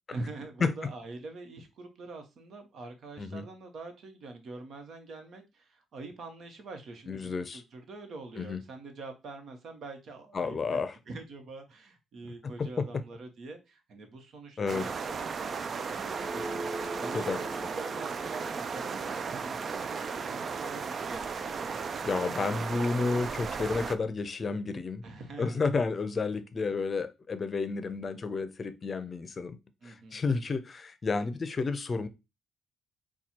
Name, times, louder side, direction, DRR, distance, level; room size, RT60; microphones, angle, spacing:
voice 1, 0.1-10.8 11.1-15.6 15.9-16.7 17.0-21.8 25.0-25.7 29.8-30.2, right 3 dB, 65° right, 1.1 m, -45 dB
voice 2, 7.1-7.6 8.4-8.6 10.3-11.0 12.6-12.9 14.6-14.9 17.1-17.4 22.0-25.0 25.4-29.6 29.8-32.1, left 4 dB, 35° left, 0.6 m, -31 dB
sound 1, 14.7-24.0, right 5 dB, 45° right, 0.4 m, -35 dB
sound 2, 16.1-20.9, right 1 dB, 5° right, 0.7 m, -43 dB
4.3 x 2.3 x 4.4 m
cardioid pair, 90°, 0 cm